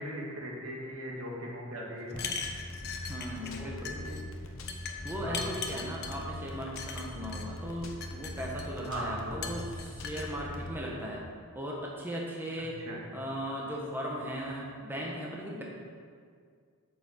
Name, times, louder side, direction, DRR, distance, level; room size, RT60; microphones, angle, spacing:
voice 1, 0.0-2.4 3.4-4.2 5.1-5.5 8.8-9.6 12.8-13.0, equal, 70° right, -2 dB, 2.0 m, -39 dB
sound 1, 2.1-10.8, left 1 dB, 70° left, 1.1 m, -42 dB
sound 2, 2.1-3.6 3.8-4.2 4.7-6.2 6.8-7.4 7.9-8.9 9.4-10.3, left 5 dB, 50° left, 0.9 m, -39 dB
voice 2, 3.1-3.9 5.0-11.2 11.5-12.8 13.1-15.6, equal, 10° right, -3 dB, 1.2 m, -37 dB
8.7 x 6.0 x 7.2 m, 2.1 s
head